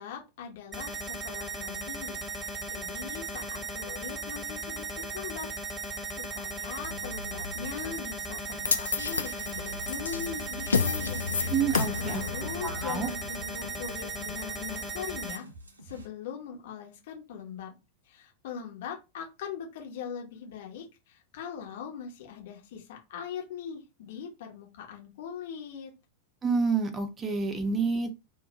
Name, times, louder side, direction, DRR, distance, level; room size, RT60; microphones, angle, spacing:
voice 1, 0.0-5.5 5.8-11.2 12.0-15.5 15.8-17.7 18.1-25.9, left 7 dB, 55° left, 0.9 m, -41 dB
sound 1, 0.7-15.4, right 2 dB, 5° right, 0.9 m, -37 dB
sound 2, 6.8-16.1, right 1 dB, 80° right, 0.7 m, -46 dB
sound 3, 8.7-14.9, left 5 dB, 75° left, 0.3 m, -32 dB
voice 2, 11.5-12.2 12.6-13.1 26.4-28.1, right 5 dB, 20° right, 0.5 m, -28 dB
2.5 x 2.1 x 4.0 m
figure-of-eight pair, 90°, 0 cm